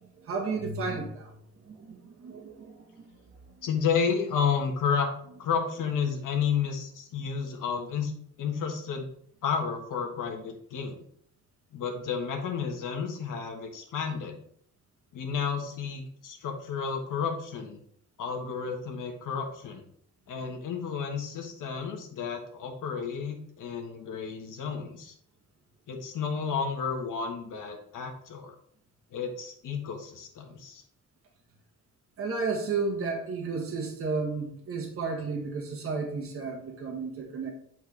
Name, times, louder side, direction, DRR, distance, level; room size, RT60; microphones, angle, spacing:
voice 1, 0.3-1.3 1.7-2.9 32.2-37.5, right 4 dB, 45° right, 1 dB, 1.3 m, -32 dB
voice 2, 3.6-5.1 5.4-8.1 8.4-9.1 9.4-11.0 11.7-14.4 15.1-17.8 18.2-19.8 20.3-25.1 25.9-28.5 29.1-30.8, left 6 dB, 85° left, 3 dB, 1.4 m, -31 dB
8.1 x 4.5 x 3.2 m, 0.64 s
wide cardioid pair, 175°, 31 cm